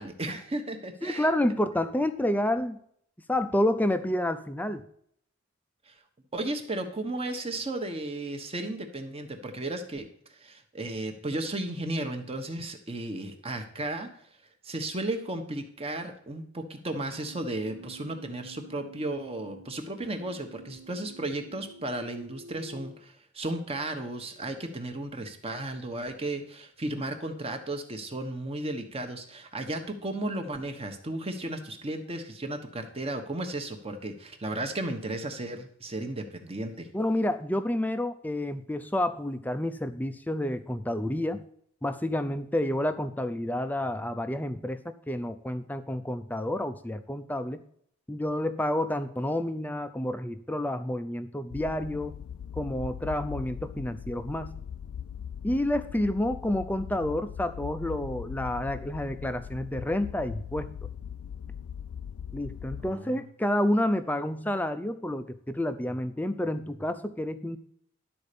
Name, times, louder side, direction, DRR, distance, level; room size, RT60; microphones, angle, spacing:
voice 1, 0.0-1.3 5.9-6.0 6.3-10.0 10.3-14.1 14.6-36.9 62.9-63.2, right 2 dB, 25° right, 5 dB, 1.1 m, -34 dB
voice 2, 1.0-2.8 3.3-4.9 36.9-41.4 41.8-47.6 48.1-52.1 52.6-54.6 55.4-60.7 62.3-67.6, left 1 dB, 10° left, 10 dB, 0.5 m, -29 dB
Keyboard (musical), 17.1-23.0, right 3 dB, 65° right, 1.0 m, -49 dB
sound 1, 51.5-62.9, left 8 dB, 70° left, 0.3 m, -40 dB
11.5 x 4.3 x 6.8 m, 0.66 s
head